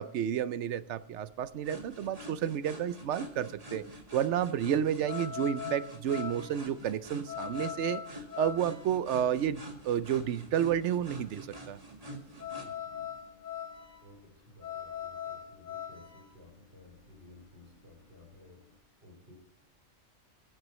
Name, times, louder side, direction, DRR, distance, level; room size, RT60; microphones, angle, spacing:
voice 1, 0.0-3.8 4.1-8.0 8.4-11.8, right 9 dB, 70° right, 0.9 m, -31 dB
sound 1, 0.7-18.8, left 9 dB, 80° left, 4.1 m, -43 dB
sound 2, 1.6-12.7, right 1 dB, 30° right, 2.0 m, -46 dB
voice 2, 12.6-13.3 14.0-19.3, left 2 dB, 55° right, 5.0 m, -56 dB
22.0 x 8.0 x 3.1 m
omnidirectional pair, 1.3 m